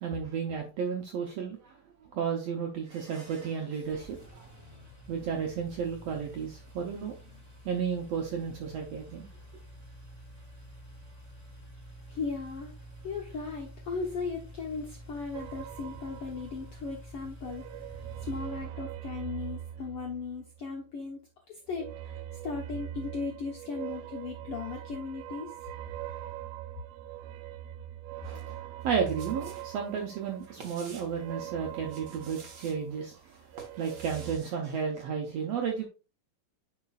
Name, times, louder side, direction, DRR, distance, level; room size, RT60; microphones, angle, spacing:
voice 1, 0.0-1.7 2.1-4.5 5.1-7.2 7.6-9.3 28.2-33.4 33.8-35.9, right 6 dB, 70° right, 1.5 m, -33 dB
Engine, 3.4-19.1, equal, 10° right, 0.9 m, -49 dB
voice 2, 12.1-12.7 13.0-17.6 18.2-21.2 21.5-25.5, left 4 dB, 70° left, 1.4 m, -37 dB
sound 1, 15.3-17.0 17.3-20.8 21.7-33.1 33.4-34.4, right 12 dB, 90° right, 1.6 m, -42 dB
sound 2, 28.8-29.7 30.0-31.2 31.8-32.8 33.3-34.5, right 4 dB, 50° right, 1.3 m, -50 dB
9.7 x 5.1 x 2.4 m
omnidirectional pair, 3.9 m